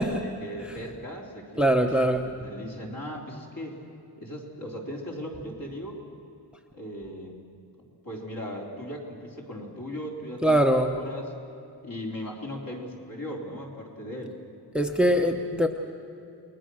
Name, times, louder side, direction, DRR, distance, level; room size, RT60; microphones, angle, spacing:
voice 1, 0.0-1.9 2.2-3.8 4.2-6.0 6.7-7.4 8.0-10.6 10.9-11.3 11.8-14.4 14.9-15.2, equal, 55° left, -1 dB, 3.8 m, -38 dB
voice 2, 1.6-2.3 10.4-11.0 14.7-15.7, right 1 dB, 5° right, 4 dB, 0.8 m, -22 dB
29.5 x 20.5 x 6.4 m, 2.7 s
wide cardioid pair, 165°, 40 cm